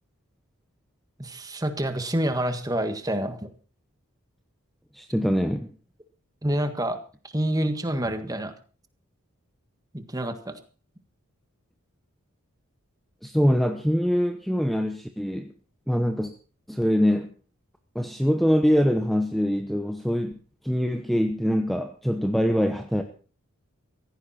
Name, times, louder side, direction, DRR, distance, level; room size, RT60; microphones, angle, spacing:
voice 1, 1.2-3.5 6.4-7.0 7.3-8.5 9.9-10.6, right 1 dB, 15° right, 8 dB, 1.6 m, -27 dB
voice 2, 4.9-5.7 13.2-15.5 15.9-16.3 16.7-17.3 17.9-20.3 20.6-23.0, equal, ahead, 6 dB, 0.9 m, -23 dB
16.5 x 15.5 x 4.3 m, 0.38 s
head